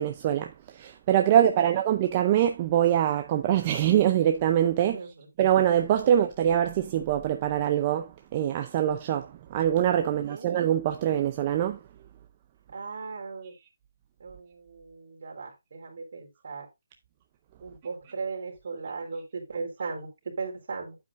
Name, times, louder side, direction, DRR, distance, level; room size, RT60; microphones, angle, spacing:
voice 1, 0.0-5.0 5.4-11.8, right 10 dB, 20° right, 0.6 m, -24 dB
voice 2, 1.3-1.7 4.8-5.3 10.0-10.5 12.7-13.5 14.2-16.7 17.6-21.0, right 4 dB, 50° right, 4.1 m, -38 dB
9.7 x 8.3 x 2.5 m
hypercardioid pair, 170°, 0 cm